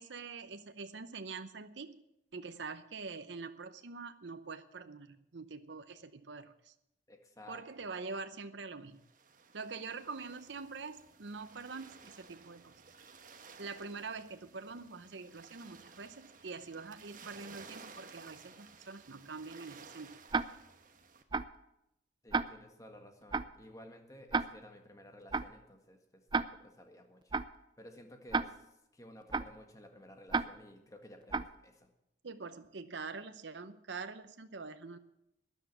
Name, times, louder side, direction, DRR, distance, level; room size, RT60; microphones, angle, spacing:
voice 1, 0.0-2.0 2.3-6.7 7.5-9.0 9.5-12.7 13.6-20.2 32.2-35.0, right 4 dB, 75° right, 10 dB, 0.8 m, -45 dB
voice 2, 7.1-7.6 22.2-27.3 27.8-31.9, left 1 dB, 20° left, 5 dB, 1.7 m, -54 dB
sound 1, 9.0-21.2, right 5 dB, 45° right, 1.3 m, -56 dB
Tick-tock, 20.3-20.4 21.3-21.4 22.3-22.4 23.3-23.4 24.3-24.4 25.3-25.4 26.3-26.4 27.3-27.4 28.3-28.4 29.3-29.4 30.3-30.4 31.3-31.4, right 4 dB, 25° right, 0.5 m, -30 dB
13.0 x 10.0 x 8.2 m, 0.84 s
head